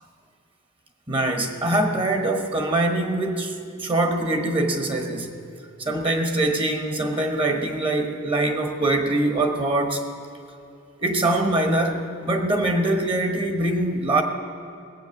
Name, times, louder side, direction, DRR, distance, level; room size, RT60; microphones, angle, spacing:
voice 1, 1.1-5.4 5.8-10.0 11.0-14.2, right 2 dB, 25° right, 4 dB, 1.1 m, -23 dB
19.0 x 8.7 x 7.1 m, 2.6 s
head